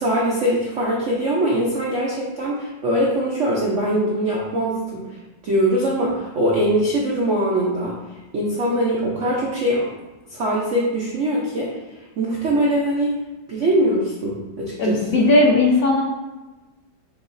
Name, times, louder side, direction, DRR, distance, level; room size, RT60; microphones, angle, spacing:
voice 1, 0.0-5.0 5.4-7.9 8.3-9.9 10.3-11.7 12.2-13.1 13.5-15.3, right 1 dB, 70° right, -4 dB, 0.7 m, -22 dB
voice 2, 14.8-16.0, left 2 dB, 70° left, -2 dB, 0.9 m, -17 dB
6.5 x 3.0 x 2.6 m, 1.1 s
omnidirectional pair, 2.1 m